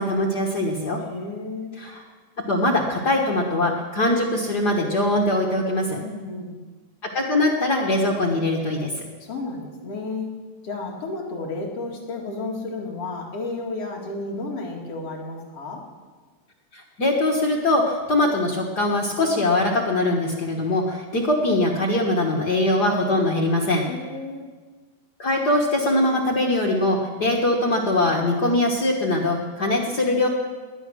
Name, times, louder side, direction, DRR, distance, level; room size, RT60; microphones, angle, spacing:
voice 1, 0.0-1.0 1.8-2.0 2.5-6.0 7.1-9.0 16.7-23.8 25.2-30.3, left 1 dB, 70° left, 0 dB, 0.9 m, -22 dB
voice 2, 1.0-1.8 6.0-6.6 9.2-10.3 10.6-15.8 23.9-24.5, left 3 dB, 45° left, -1 dB, 2.9 m, -32 dB
18.5 x 11.0 x 6.2 m, 1.4 s
omnidirectional pair, 4.0 m